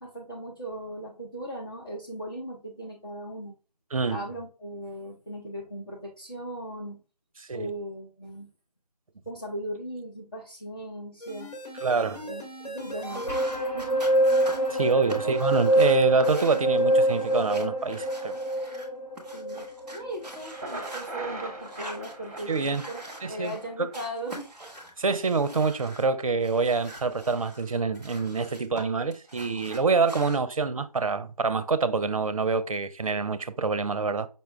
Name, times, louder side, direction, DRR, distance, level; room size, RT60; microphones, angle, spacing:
voice 1, 0.0-3.6 4.1-7.0 7.5-8.5 9.3-11.5 12.2-13.3 13.7-14.0 15.1-15.3 19.3-19.7 19.9-23.0 23.3-24.5, right 1 dB, 35° left, 0.8 m, -38 dB
voice 2, 3.9-4.2 7.4-7.7 11.8-12.2 14.7-18.4 22.5-22.8 23.2-23.9 25.0-34.3, right 4 dB, 55° right, 0.5 m, -26 dB
sound 1, 11.2-21.6 22.0-22.1, right 1 dB, 85° left, 1.8 m, -26 dB
sound 2, 12.9-18.9 19.1-21.1 21.6-23.6 23.9-26.1 26.4-28.8 29.1-30.4, right 1 dB, ahead, 0.4 m, -44 dB
Thunder, 20.3-24.3, right 2 dB, 25° right, 0.9 m, -41 dB
5.4 x 2.2 x 3.4 m
figure-of-eight pair, 160°, 21 cm